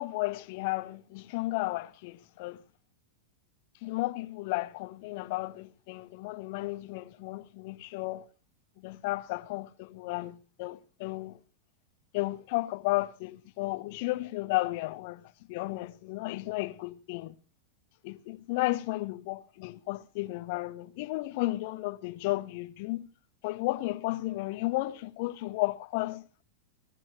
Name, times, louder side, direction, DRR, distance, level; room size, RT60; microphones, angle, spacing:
voice 1, 0.0-2.6 3.8-8.3 8.8-11.4 12.1-15.2 15.5-17.3 18.0-23.1 23.4-26.2, left 20 dB, 50° left, 1.0 m, -33 dB
22.5 x 12.0 x 3.1 m
figure-of-eight pair, 90°, 0 cm